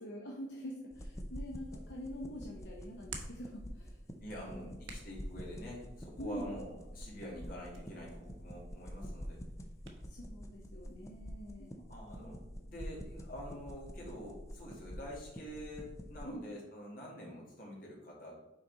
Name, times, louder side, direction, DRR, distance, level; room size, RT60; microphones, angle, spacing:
voice 1, 0.0-4.0 4.3-4.7 6.2-6.5 10.0-11.8 16.3-16.4, equal, 70° left, -2 dB, 0.8 m, -45 dB
sound 1, 0.9-16.3, equal, 15° left, 0.5 m, -47 dB
Hands, 1.6-10.1, right 4 dB, 90° right, 0.9 m, -55 dB
voice 2, 4.2-9.4 11.9-18.5, equal, 50° left, -3 dB, 1.9 m, -47 dB
5.8 x 4.1 x 4.0 m, 0.96 s
head